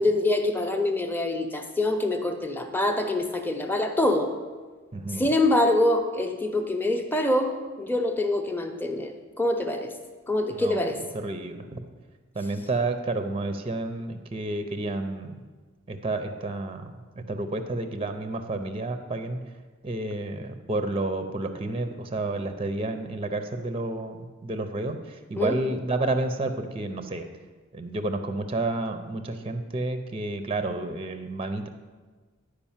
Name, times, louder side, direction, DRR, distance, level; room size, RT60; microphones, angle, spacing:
voice 1, 0.0-4.3 5.1-9.9 10.3-11.0 25.4-25.5, left 1 dB, 10° left, 5 dB, 0.8 m, -25 dB
voice 2, 4.9-5.2 10.5-11.8 12.3-15.4 15.9-19.4 19.8-27.3 27.7-31.7, right 2 dB, 25° right, 8 dB, 0.6 m, -30 dB
10.0 x 4.9 x 7.2 m, 1.4 s
head